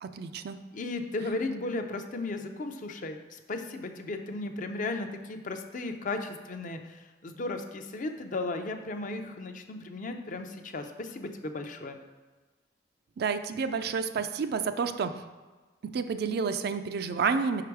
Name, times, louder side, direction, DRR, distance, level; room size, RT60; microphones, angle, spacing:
voice 1, 0.0-0.6 13.2-15.1 15.9-17.6, right 5 dB, 60° right, 9 dB, 0.4 m, -30 dB
voice 2, 0.7-12.0, left 2 dB, 45° left, 6 dB, 0.5 m, -35 dB
5.3 x 4.9 x 4.6 m, 1.3 s
head